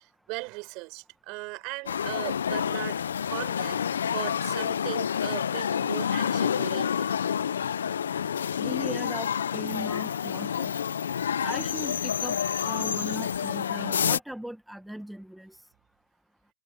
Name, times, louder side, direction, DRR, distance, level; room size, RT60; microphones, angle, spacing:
voice 1, 0.0-3.0 3.3-3.8 4.1-7.1, right 27 dB, 40° right, 6.1 m, -38 dB
sound 1, 1.9-14.2, left 8 dB, 80° left, 0.6 m, -28 dB
voice 2, 8.6-10.7 11.4-15.6, right 1 dB, ahead, 1.2 m, -38 dB
hypercardioid pair, 140°, 0 cm